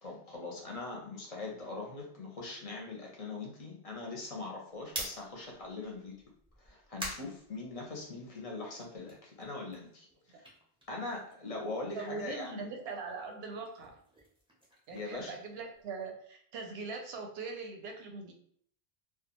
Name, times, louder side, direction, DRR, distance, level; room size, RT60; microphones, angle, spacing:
voice 1, 0.0-6.2 6.6-10.5 10.9-12.7 14.9-15.4, left 3 dB, 45° left, -1 dB, 0.5 m, -41 dB
sound 1, 4.8-8.3 8.7-11.6 11.9-16.0, equal, 5° right, 0.5 m, -47 dB
voice 2, 11.9-14.0 14.9-18.3, right 4 dB, 80° right, 3 dB, 0.8 m, -41 dB
2.3 x 2.2 x 2.9 m, 0.62 s
omnidirectional pair, 1.0 m